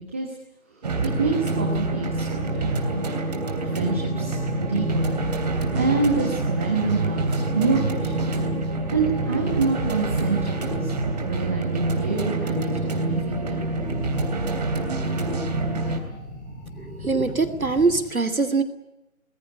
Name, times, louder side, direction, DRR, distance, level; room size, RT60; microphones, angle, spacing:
sound 1, 0.8-16.0, right 2 dB, 30° right, 3.1 m, -26 dB
voice 1, 1.2-5.2 5.7-8.4 8.9-10.9 11.2-13.6 15.8-15.9, right 4 dB, 10° right, 0 dB, 1.1 m, -27 dB
scary night base layer, 3.5-18.0, left 1 dB, 15° left, 6.0 m, -40 dB
voice 2, 16.8-18.6, right 4 dB, 75° right, 11 dB, 2.9 m, -23 dB
23.5 x 20.5 x 8.4 m, 0.91 s
figure-of-eight pair, 160°, 42 cm